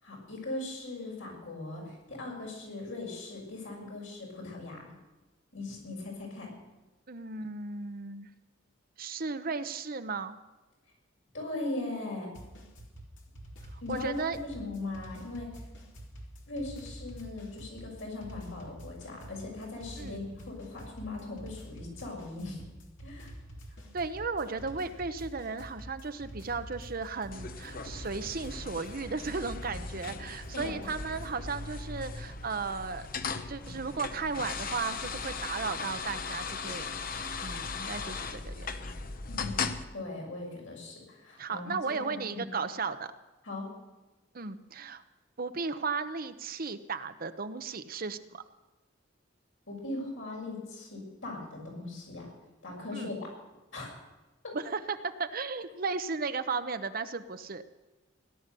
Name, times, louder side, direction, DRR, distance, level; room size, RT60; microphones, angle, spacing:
voice 1, 0.0-4.9 5.5-6.5 11.3-12.3 13.8-14.1 14.4-15.5 16.5-22.6 23.0-23.3 30.5-30.9 39.3-41.7 42.0-42.5 43.4-43.7 49.7-52.3 52.6-53.2 53.7-53.9 54.4-54.5, left 2 dB, 85° left, -1 dB, 6.8 m, -39 dB
voice 2, 7.1-8.3 9.0-10.4 13.7-14.4 20.0-20.2 23.9-33.0 33.5-36.9 37.4-38.7 41.4-43.1 44.3-45.0 45.4-48.4 52.9-53.1 54.5-57.6, right 4 dB, 50° right, 10 dB, 0.8 m, -35 dB
sound 1, 12.3-31.6, right 1 dB, 70° left, 3.5 m, -47 dB
sound 2, 27.3-39.8, left 4 dB, 45° left, 0.9 m, -38 dB
17.5 x 11.5 x 6.8 m, 1.1 s
head